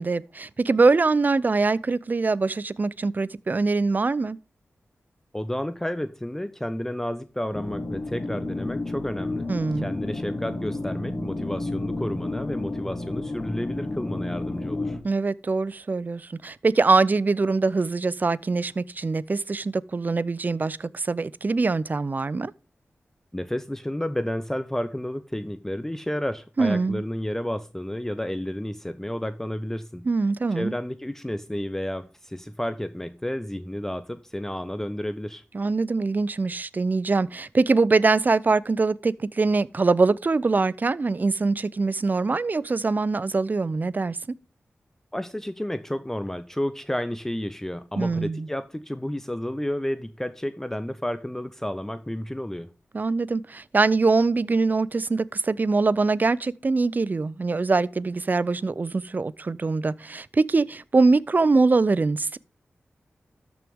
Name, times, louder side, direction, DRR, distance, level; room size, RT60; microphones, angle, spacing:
voice 1, 0.0-4.4 9.5-9.9 15.0-22.5 26.6-27.0 30.1-30.7 35.5-44.2 48.0-48.5 52.9-62.4, right 3 dB, 40° right, 0.5 m, -23 dB
voice 2, 5.3-9.5 9.8-15.0 23.3-30.1 30.5-35.4 45.1-52.7, left 1 dB, 10° left, 0.7 m, -31 dB
sound 1, 7.5-15.0, left 2 dB, 35° left, 1.9 m, -31 dB
13.0 x 6.1 x 3.6 m
wide cardioid pair, 80°, 5 cm